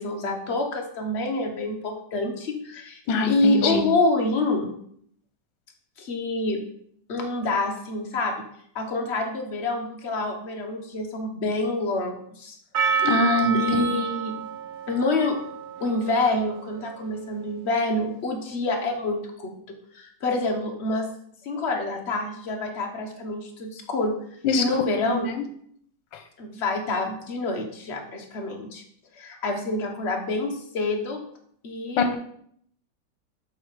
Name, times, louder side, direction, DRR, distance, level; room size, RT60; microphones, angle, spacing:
voice 1, 0.0-3.0 3.3-4.7 6.0-6.6 7.1-8.5 8.7-12.6 13.5-14.4 14.9-15.4 15.8-19.6 19.9-21.1 21.4-24.2 24.6-25.3 26.4-28.8 29.1-31.2 31.6-32.1, left 2 dB, 45° left, 2 dB, 1.0 m, -27 dB
voice 2, 3.1-3.9 13.0-13.8 24.4-24.6 25.1-25.2 32.0-32.2, left 4 dB, 80° left, 5 dB, 1.5 m, -23 dB
Percussion, 12.7-17.3, right 7 dB, 60° right, 1.0 m, -29 dB
7.0 x 3.3 x 4.7 m, 0.66 s
omnidirectional pair, 2.0 m